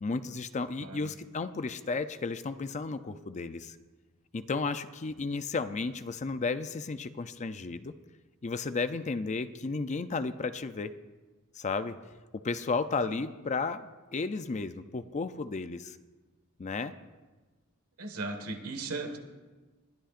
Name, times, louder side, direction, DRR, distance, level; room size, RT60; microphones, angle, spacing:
voice 1, 0.0-3.8 4.3-7.9 8.4-10.9 11.5-12.0 12.3-16.0 16.6-17.0, left 4 dB, 35° left, 11 dB, 0.5 m, -33 dB
voice 2, 0.8-1.1 13.1-13.2 18.0-19.2, right 3 dB, 80° right, 5 dB, 1.7 m, -37 dB
21.5 x 13.0 x 2.5 m, 1.2 s
head